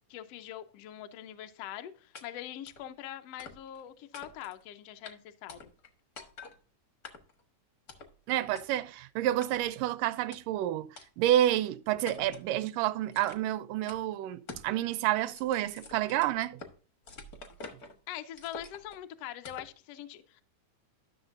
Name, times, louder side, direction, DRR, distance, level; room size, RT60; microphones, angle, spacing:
voice 1, 0.1-5.7 18.1-20.4, left 12 dB, 80° left, 1.4 m, -43 dB
sound 1, 2.1-2.2 2.7-2.8 3.4-3.8 4.1-4.6 5.0-5.1 5.5-5.9 6.2-6.6 7.0-7.4 7.9-8.1 8.5-8.6 9.4-9.8 10.3-10.4 11.0-11.1 11.5-11.6 12.1-12.5 13.1-13.5 13.9-14.0 14.5-14.7 15.0-16.7 17.1-17.9 18.4-19.0 19.4-19.7, left 3 dB, 60° left, 0.9 m, -47 dB
voice 2, 8.3-16.6, right 13 dB, 85° right, 2.2 m, -29 dB
12.5 x 6.4 x 2.5 m
omnidirectional pair, 3.7 m